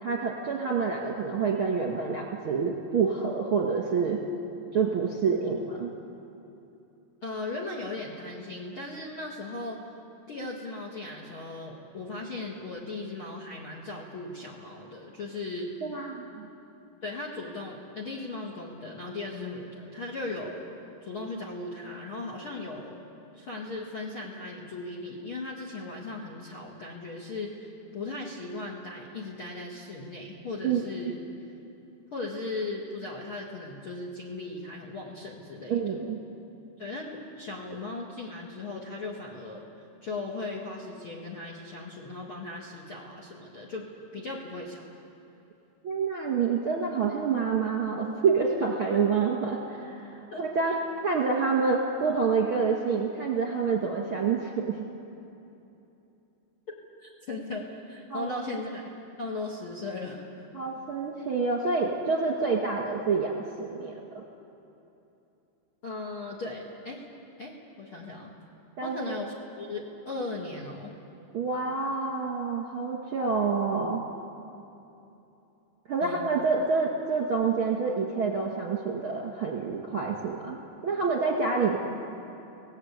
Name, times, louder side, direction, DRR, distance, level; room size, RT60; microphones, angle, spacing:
voice 1, 0.0-4.2 4.7-5.9 15.8-16.5 30.6-30.8 35.7-36.2 45.8-50.7 51.0-54.9 58.1-58.3 60.5-64.2 68.8-69.1 71.3-74.0 75.9-81.8, right 5 dB, 40° right, -1 dB, 2.2 m, -27 dB
voice 2, 7.2-9.8 10.3-15.7 17.0-20.7 21.0-23.0 23.3-31.2 32.1-36.0 36.8-43.9 44.1-44.8 50.3-50.4 57.0-58.8 59.2-60.2 65.8-67.0 67.4-68.3 68.8-70.9 76.0-76.3, left 2 dB, 40° left, -1 dB, 2.0 m, -37 dB
29.5 x 18.5 x 8.4 m, 2.9 s
omnidirectional pair, 5.2 m